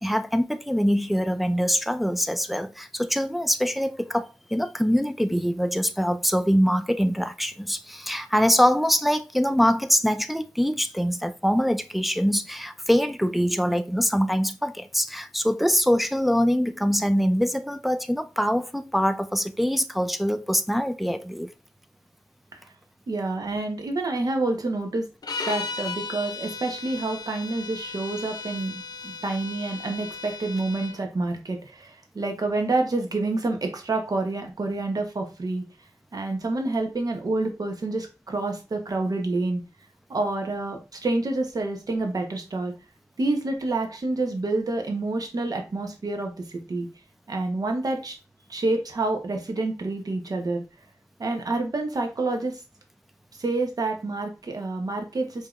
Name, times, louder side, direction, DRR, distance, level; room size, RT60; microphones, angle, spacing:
voice 1, 0.0-21.5, equal, ahead, 0.4 m, -24 dB
voice 2, 23.1-25.1 25.4-35.6 36.1-39.6 40.1-42.7 43.2-46.9 47.3-48.2 48.5-50.6 51.2-52.6 53.4-55.5, right 2 dB, 70° right, 0.8 m, -28 dB
sound 1, 25.2-31.0, left 4 dB, 80° left, 0.4 m, -36 dB
4.8 x 2.8 x 2.4 m
wide cardioid pair, 70°, 7 cm